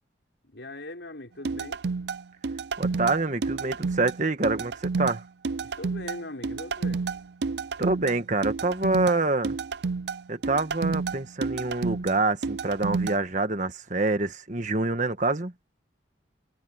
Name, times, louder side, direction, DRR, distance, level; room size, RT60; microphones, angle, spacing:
voice 1, 0.4-1.8 5.6-7.0, left 1 dB, 75° left, 5.8 m, -40 dB
sound 1, 1.5-13.2, right 4 dB, 65° right, 0.5 m, -30 dB
voice 2, 2.8-5.2 7.8-9.6 10.3-15.5, right 3 dB, 45° right, 1.4 m, -26 dB
head